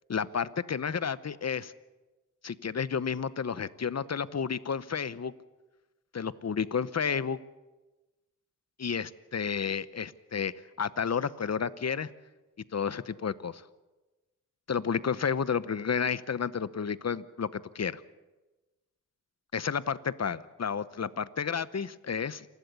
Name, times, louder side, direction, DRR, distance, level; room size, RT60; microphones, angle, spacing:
voice 1, 0.1-1.7 2.4-5.3 6.1-7.4 8.8-10.5 10.8-12.1 12.7-13.6 14.7-18.0 19.5-22.5, left 6 dB, 55° left, 16 dB, 0.9 m, -31 dB
28.5 x 12.0 x 8.3 m, 1.2 s
cardioid pair, 60°, 32 cm